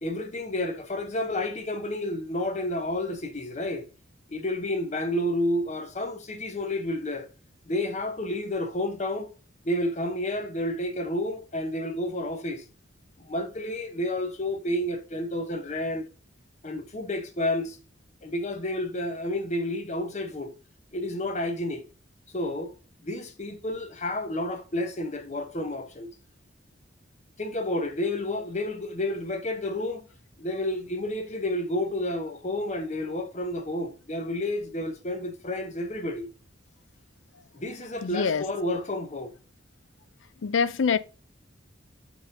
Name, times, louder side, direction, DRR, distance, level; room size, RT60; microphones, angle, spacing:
voice 1, 0.0-3.8 4.3-7.3 7.7-9.3 9.6-12.6 13.2-16.0 16.6-17.8 18.2-20.5 20.9-21.8 22.3-22.7 23.0-26.1 27.4-30.1 30.4-36.3 37.5-39.3, left 1 dB, 35° left, 0.9 m, -30 dB
voice 2, 38.0-38.4 40.4-41.0, left 5 dB, 75° left, 0.4 m, -24 dB
4.8 x 3.8 x 5.3 m
head